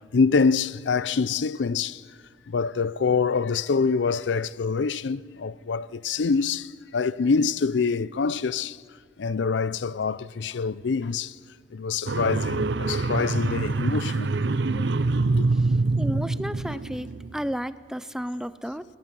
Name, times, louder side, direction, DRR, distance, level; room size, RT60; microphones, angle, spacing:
voice 1, 0.0-2.0 2.5-8.8 9.2-11.3 11.7-14.3 14.7-14.8 15.3-15.4, left 5 dB, 75° left, 0.5 m, -25 dB
sound 1, 12.1-17.3, right 3 dB, 70° right, 0.7 m, -25 dB
voice 2, 16.0-17.1 17.3-18.8, equal, 5° right, 0.5 m, -32 dB
27.5 x 19.0 x 7.5 m
head